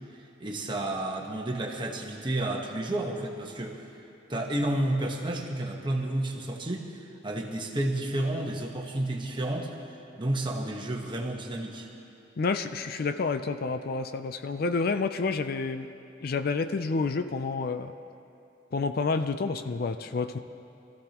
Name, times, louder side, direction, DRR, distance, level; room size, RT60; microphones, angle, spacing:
voice 1, 0.1-3.9 4.3-11.9, right 1 dB, 25° right, 1 dB, 1.2 m, -31 dB
voice 2, 12.4-15.9 16.2-17.9 18.7-20.4, left 4 dB, 50° left, 9 dB, 0.4 m, -29 dB
24.5 x 14.5 x 3.0 m, 2.6 s
head